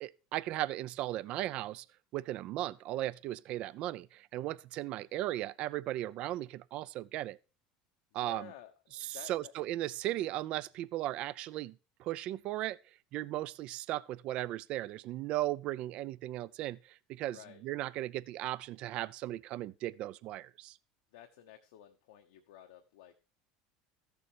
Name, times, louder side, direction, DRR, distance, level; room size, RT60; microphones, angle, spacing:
voice 1, 0.0-1.9 2.1-7.4 8.1-8.5 8.9-11.7 12.0-12.8 13.1-20.8, right 15 dB, 55° right, 0.5 m, -37 dB
voice 2, 8.1-9.5 17.3-17.6 21.1-23.2, left 12 dB, 85° left, 1.1 m, -53 dB
13.5 x 6.9 x 4.6 m
supercardioid pair, 110°, 2 cm